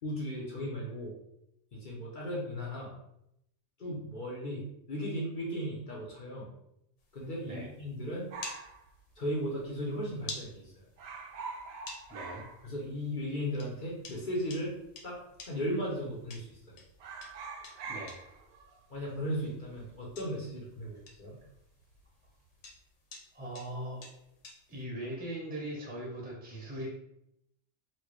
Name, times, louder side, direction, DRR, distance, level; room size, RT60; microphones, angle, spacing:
voice 1, 0.0-1.2 1.7-2.9 3.8-6.5 7.1-8.3 9.2-10.8 12.6-14.7 15.0-15.2 15.4-16.8 18.9-21.4, equal, 45° left, -4 dB, 0.8 m, -36 dB
sound 1, 7.0-24.8, left 3 dB, 70° left, 1.0 m, -52 dB
sound 2, 8.3-9.8 10.0-10.1 10.4-10.6 10.9-13.2 13.5-13.6 14.4-15.0 15.4-15.6 15.9-16.6 16.9-21.5 21.8-22.3, right 4 dB, 65° right, 0.7 m, -45 dB
voice 2, 12.1-12.4 17.8-18.2 23.3-24.1 24.7-26.9, right 1 dB, 10° right, -2 dB, 0.6 m, -40 dB
4.2 x 2.1 x 3.1 m, 0.80 s
omnidirectional pair, 1.3 m